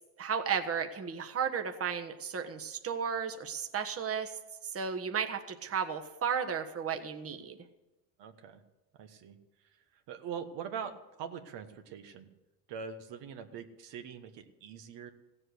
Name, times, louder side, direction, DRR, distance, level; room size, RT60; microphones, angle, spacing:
voice 1, 0.2-4.3 4.7-7.6, right 7 dB, 30° right, 5 dB, 1.4 m, -34 dB
voice 2, 8.2-8.6 9.0-9.4 9.9-12.3 12.7-15.1, right 7 dB, 60° right, 6 dB, 1.4 m, -43 dB
16.0 x 7.8 x 8.1 m, 1.1 s
supercardioid pair, 100°, 47 cm